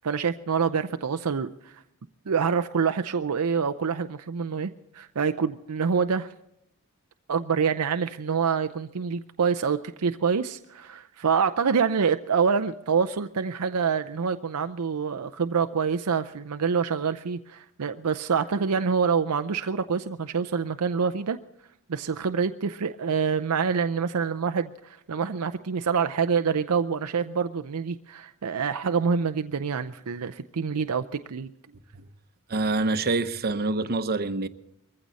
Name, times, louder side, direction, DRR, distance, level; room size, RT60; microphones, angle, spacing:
voice 1, 0.0-1.8 2.3-6.3 7.3-21.4 21.9-31.5, right 6 dB, 85° right, 0.6 m, -26 dB
voice 2, 32.5-34.5, right 3 dB, 45° right, 0.9 m, -26 dB
22.0 x 15.5 x 4.1 m
head